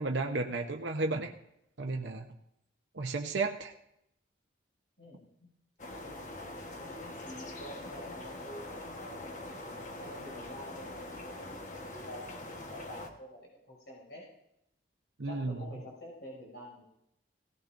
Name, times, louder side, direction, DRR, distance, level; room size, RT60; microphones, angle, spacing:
voice 1, 0.0-1.3 1.8-2.3 2.9-3.7 15.2-15.6, right 3 dB, 75° right, 2 dB, 0.9 m, -33 dB
voice 2, 5.0-5.5 6.0-6.4 6.7-9.6 10.0-14.2 15.2-16.8, equal, 65° left, -3 dB, 6.0 m, -48 dB
sound 1, 5.8-13.1, left 1 dB, 40° left, 1.3 m, -43 dB
17.5 x 17.5 x 2.6 m, 0.77 s
head